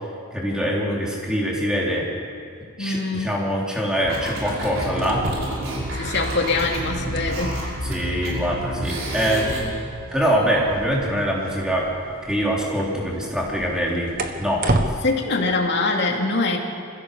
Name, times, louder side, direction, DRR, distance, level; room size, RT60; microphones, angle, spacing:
voice 1, 0.3-2.1 2.8-5.2 7.8-9.7 10.1-11.9 12.3-14.1 14.4-14.6, equal, 5° right, -4 dB, 4.1 m, -24 dB
voice 2, 2.8-3.4 5.9-7.6 13.9-14.0 14.7-16.6, left 3 dB, 55° left, 0 dB, 2.7 m, -24 dB
sound 1, 4.0-9.6, right 1 dB, 65° right, 6.1 m, -29 dB
sound 2, 4.9-14.9, right 2 dB, 40° right, 1.3 m, -33 dB
25.5 x 16.0 x 7.0 m, 2.4 s
head